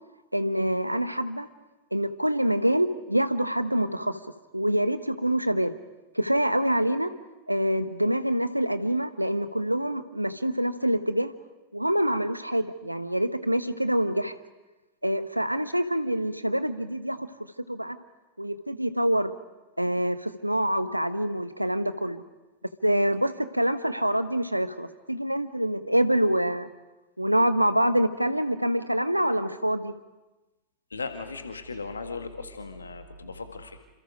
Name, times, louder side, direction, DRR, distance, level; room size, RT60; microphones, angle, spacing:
voice 1, 0.3-1.5 1.9-4.2 4.5-5.7 6.1-7.1 7.5-11.3 11.7-14.3 15.0-17.3 17.7-18.0 18.4-19.3 19.8-22.2 22.8-26.7 27.2-29.9, right 1 dB, 90° right, 12 dB, 1.1 m, -26 dB
voice 2, 30.9-33.8, left 4 dB, 75° left, 7 dB, 1.9 m, -37 dB
28.0 x 27.0 x 5.1 m, 1.1 s
figure-of-eight pair, 90°, 0 cm